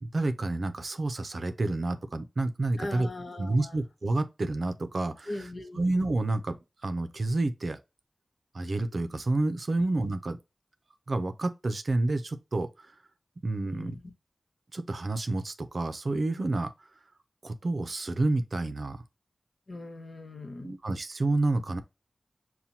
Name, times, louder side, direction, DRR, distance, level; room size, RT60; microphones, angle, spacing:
voice 1, 0.0-3.1 3.4-5.3 5.8-6.6 6.8-7.8 8.5-10.4 11.1-12.9 13.4-14.0 14.7-16.7 17.4-19.0 20.6-21.8, right 2 dB, 65° right, 0.5 m, -29 dB
voice 2, 2.8-3.9 5.3-6.0 9.8-9.9 13.6-14.0 19.7-20.8, left 2 dB, 65° left, 1.0 m, -40 dB
5.7 x 2.2 x 2.6 m
wide cardioid pair, 60°, 0 cm